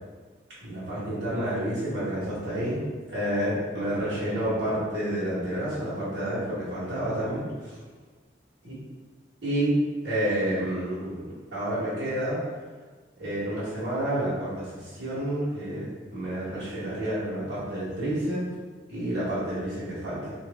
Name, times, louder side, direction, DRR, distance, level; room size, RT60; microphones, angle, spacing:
voice 1, 0.6-2.8 3.1-7.8 8.6-8.8 9.4-9.7 10.0-12.4 13.2-18.4 18.9-20.3, right 1 dB, 65° right, -11 dB, 1.4 m, -29 dB
3.1 x 2.5 x 3.4 m, 1.4 s
head